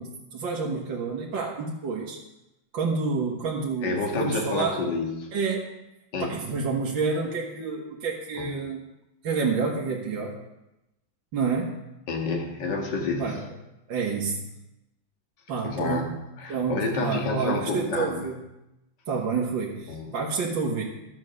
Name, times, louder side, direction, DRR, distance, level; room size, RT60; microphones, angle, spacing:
voice 1, 0.0-2.2 2.7-4.8 5.3-5.7 6.2-8.8 9.2-10.4 11.3-11.8 13.2-13.4 13.9-14.5 15.5-16.2 16.5-18.4 19.1-20.8, right 4 dB, 65° right, -2 dB, 2.2 m, -29 dB
voice 2, 3.8-5.3 6.1-6.3 8.4-8.7 12.1-13.4 15.6-16.1 16.4-18.1 19.9-20.1, left 3 dB, 60° left, 2 dB, 2.2 m, -29 dB
13.0 x 8.2 x 6.5 m, 0.92 s
omnidirectional pair, 2.2 m